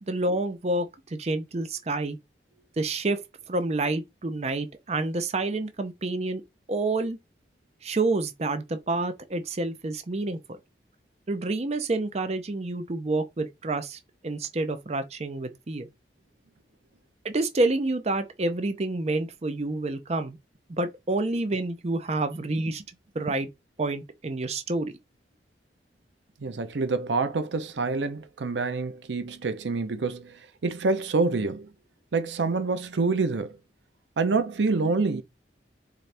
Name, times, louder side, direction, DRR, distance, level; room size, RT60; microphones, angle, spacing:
voice 1, 0.0-2.2 2.8-3.2 3.5-6.4 6.7-7.2 7.8-10.4 11.3-15.9 17.2-20.4 20.7-22.8 23.1-23.5 23.8-24.9, right 2 dB, 35° right, 0.5 m, -28 dB
voice 2, 26.4-31.7 32.1-33.6 34.2-35.2, right 3 dB, 80° right, 0.6 m, -27 dB
4.2 x 3.6 x 3.3 m
head